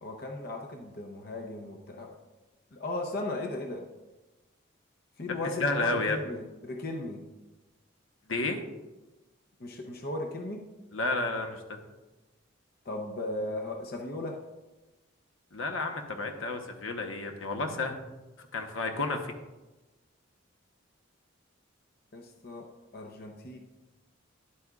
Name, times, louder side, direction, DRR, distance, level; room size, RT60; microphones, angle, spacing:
voice 1, 0.0-2.2 2.7-3.8 5.2-7.2 9.6-10.6 12.8-14.4 22.1-22.7 22.9-23.6, left 2 dB, 50° left, 2 dB, 0.7 m, -36 dB
voice 2, 5.6-6.2 8.3-8.6 10.9-11.8 15.5-18.0 18.4-19.3, left 3 dB, 75° left, 4 dB, 1.0 m, -31 dB
11.0 x 8.4 x 2.4 m, 1.1 s
head